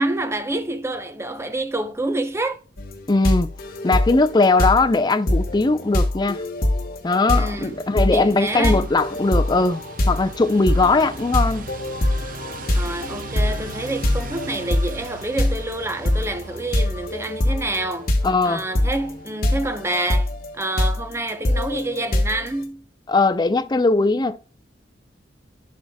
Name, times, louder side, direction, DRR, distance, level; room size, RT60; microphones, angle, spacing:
voice 1, 0.0-2.6 7.3-7.8 8.1-8.8 10.8-11.1 12.7-18.1 18.4-22.8, right 2 dB, 15° right, 0.7 m, -27 dB
sound 1, 2.8-22.6, left 1 dB, 55° left, 1.2 m, -24 dB
voice 2, 3.1-3.5 3.8-6.4 7.0-9.8 10.1-11.7 18.2-18.6 23.1-24.4, left 3 dB, 25° left, 0.5 m, -19 dB
sound 2, 7.5-19.2, right 4 dB, 50° right, 0.6 m, -39 dB
10.5 x 4.9 x 2.2 m
head